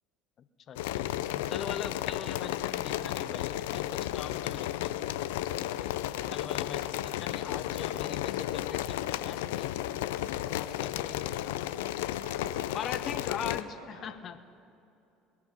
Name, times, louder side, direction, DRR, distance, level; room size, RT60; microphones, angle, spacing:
voice 1, 0.7-4.9 5.8-5.9 6.3-9.7 10.5-11.6 12.7-14.4, left 8 dB, 40° left, 12 dB, 0.7 m, -41 dB
sound 1, 0.8-13.6, left 13 dB, 65° left, 0.4 m, -33 dB
voice 2, 11.9-13.5 13.8-14.2, right 5 dB, 75° right, 7 dB, 1.0 m, -52 dB
20.5 x 11.0 x 5.4 m, 2.7 s
figure-of-eight pair, 60°, 0 cm